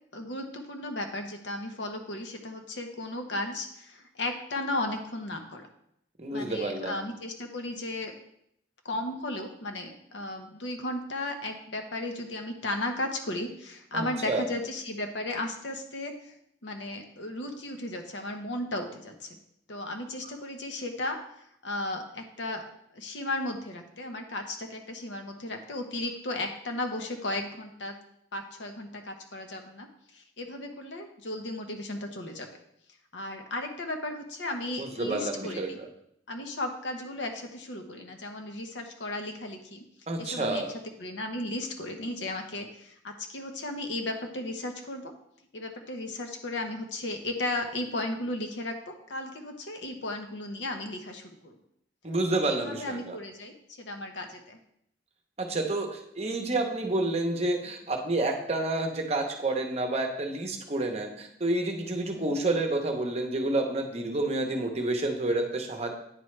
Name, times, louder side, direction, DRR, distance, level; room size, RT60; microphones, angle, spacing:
voice 1, 0.1-5.7 6.3-8.1 8.8-16.3 16.6-19.4 19.7-22.6 22.9-28.0 28.3-32.5 33.1-35.8 36.3-39.9 40.2-40.6 41.0-45.1 45.5-51.6 52.3-54.6 62.1-62.4, left 1 dB, 75° left, 5 dB, 0.9 m, -35 dB
voice 2, 6.2-7.0 13.9-14.5 34.8-35.8 40.1-40.7 52.0-53.2 55.4-66.0, right 2 dB, 35° right, 3 dB, 0.8 m, -29 dB
9.3 x 4.6 x 3.2 m, 0.74 s
head